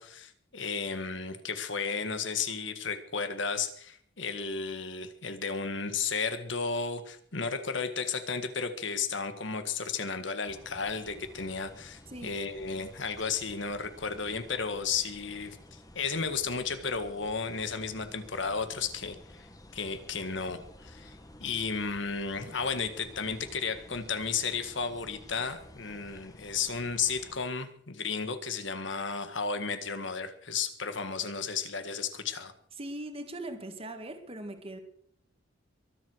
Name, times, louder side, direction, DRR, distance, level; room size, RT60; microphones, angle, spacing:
voice 1, 0.0-19.5 19.7-21.1 21.4-32.5, left 5 dB, 70° left, 10 dB, 1.7 m, -33 dB
sound 1, 10.4-27.4, left 1 dB, 20° left, 1.5 m, -52 dB
voice 2, 32.8-34.8, right 1 dB, 30° right, 7 dB, 1.9 m, -40 dB
23.0 x 7.9 x 6.3 m, 0.63 s
head